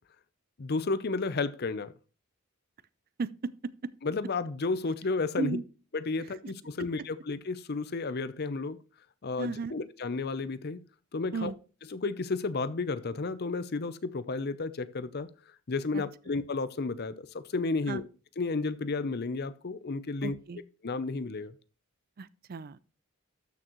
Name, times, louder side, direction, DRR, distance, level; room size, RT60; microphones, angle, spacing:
voice 1, 0.6-1.9 4.0-5.6 5.9-8.8 9.2-10.8 11.1-11.5 11.9-15.3 15.7-18.0 18.4-20.3 20.8-21.5, left 3 dB, 50° left, 0.6 m, -32 dB
voice 2, 3.2-3.9 5.4-5.6 9.4-9.8 11.3-11.6 15.9-16.0 17.9-18.0 20.2-20.6 22.2-22.8, right 4 dB, 45° right, 0.4 m, -35 dB
13.0 x 6.2 x 3.0 m
head